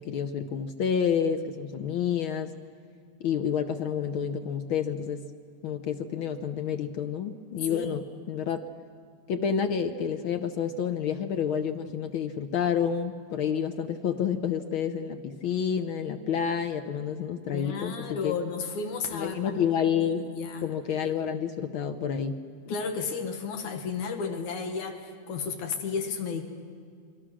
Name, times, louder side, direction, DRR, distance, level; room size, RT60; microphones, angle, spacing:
voice 1, 0.0-2.5 3.2-5.3 5.6-8.7 9.3-18.3 19.1-20.2 20.6-22.8, left 7 dB, 70° left, 8 dB, 1.2 m, -29 dB
voice 2, 7.7-8.0 17.5-19.6 20.0-20.7 22.7-26.4, left 5 dB, 90° left, 5 dB, 3.1 m, -33 dB
28.0 x 23.5 x 6.3 m, 2.3 s
omnidirectional pair, 3.3 m